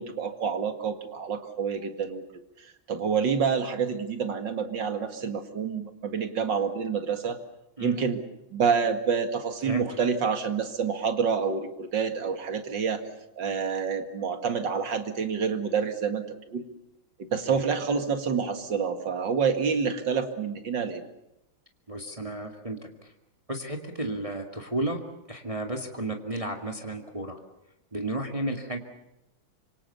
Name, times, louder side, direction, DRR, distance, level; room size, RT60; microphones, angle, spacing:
voice 1, 0.0-2.2 2.6-7.4 7.8-8.2 8.5-13.0 13.4-16.6 17.2-21.0, right 6 dB, 60° right, 8 dB, 2.7 m, -28 dB
voice 2, 21.9-22.8 23.5-25.0 25.3-27.4 27.9-28.8, right 1 dB, 15° right, 3 dB, 2.2 m, -32 dB
26.5 x 25.0 x 7.0 m, 0.89 s
omnidirectional pair, 2.2 m